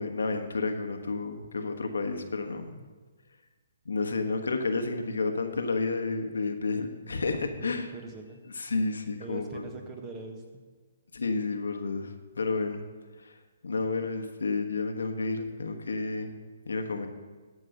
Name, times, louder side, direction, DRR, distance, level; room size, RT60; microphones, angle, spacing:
voice 1, 0.0-2.9 3.8-7.9 8.5-9.7 11.1-12.8 13.2-13.3 13.6-16.4 16.6-17.1, left 3 dB, 85° left, 6 dB, 1.2 m, -31 dB
voice 2, 7.6-8.4 9.2-10.6, right 3 dB, 20° right, 3 dB, 1.5 m, -42 dB
14.5 x 5.3 x 6.5 m, 1.4 s
hypercardioid pair, 145°, 0 cm